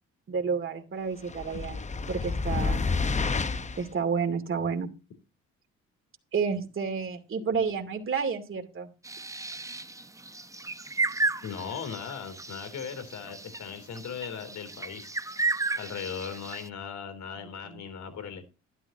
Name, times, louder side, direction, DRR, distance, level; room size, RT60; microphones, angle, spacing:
voice 1, 0.3-1.8 2.1-2.8 3.8-4.9 6.3-8.9 17.7-17.8, right 5 dB, 45° right, 5 dB, 2.5 m, -30 dB
sound 1, 1.3-3.9, left 4 dB, 25° left, 0.7 m, -29 dB
sound 2, 9.0-16.7, right 3 dB, 10° right, 0.8 m, -33 dB
voice 2, 11.4-15.1 15.7-18.4, left 7 dB, 70° left, 9 dB, 3.5 m, -38 dB
12.5 x 12.0 x 2.9 m, 0.31 s
cardioid pair, 90°, 30 cm